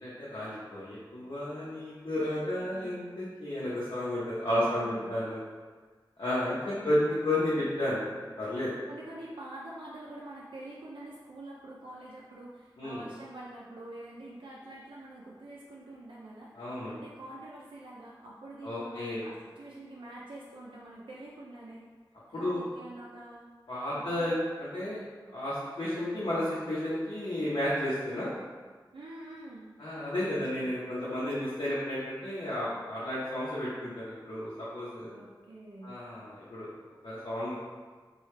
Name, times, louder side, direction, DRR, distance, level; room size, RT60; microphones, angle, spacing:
voice 1, 0.0-5.4 6.2-8.7 12.8-13.0 16.5-16.9 18.6-19.2 22.3-22.6 23.7-25.0 25.3-28.3 29.8-35.1 35.8-36.7 37.0-37.5, left 1 dB, 75° left, -10 dB, 0.7 m, -32 dB
voice 2, 2.6-3.0 4.5-5.1 6.7-6.9 8.9-21.8 22.3-23.5 23.9-24.4 28.9-29.7 35.1-36.0, right 1 dB, 85° right, -6 dB, 0.4 m, -46 dB
3.1 x 2.3 x 3.2 m, 1.4 s
wide cardioid pair, 40°, 8 cm